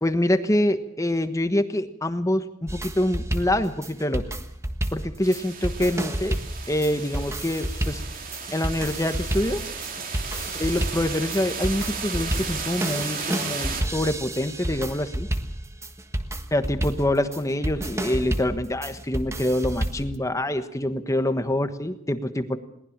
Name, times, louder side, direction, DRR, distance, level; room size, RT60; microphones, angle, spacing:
voice 1, 0.0-4.2 4.9-6.4 6.7-8.0 8.5-9.6 10.5-15.3 16.5-22.6, left 1 dB, 15° left, 9 dB, 1.3 m, -25 dB
sound 1, 2.7-20.2, right 1 dB, 15° right, 1.4 m, -30 dB
sound 2, 5.2-13.8, right 5 dB, 50° right, 3.4 m, -34 dB
22.0 x 19.0 x 7.3 m, 0.74 s
head